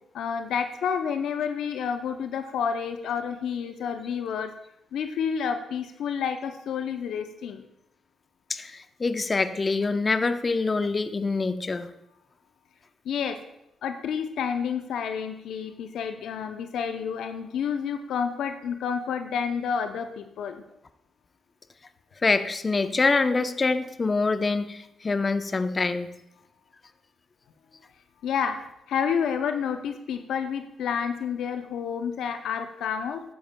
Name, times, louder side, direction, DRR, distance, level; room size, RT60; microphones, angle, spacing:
voice 1, 0.1-4.5 4.9-7.6 13.1-13.4 13.8-20.6 28.2-28.6 28.9-33.2, left 7 dB, 70° left, 8 dB, 0.6 m, -29 dB
voice 2, 8.5-11.9 22.2-26.1, left 3 dB, 35° left, 10 dB, 0.7 m, -25 dB
14.0 x 10.0 x 2.2 m, 0.82 s
hypercardioid pair, 45°, 0 cm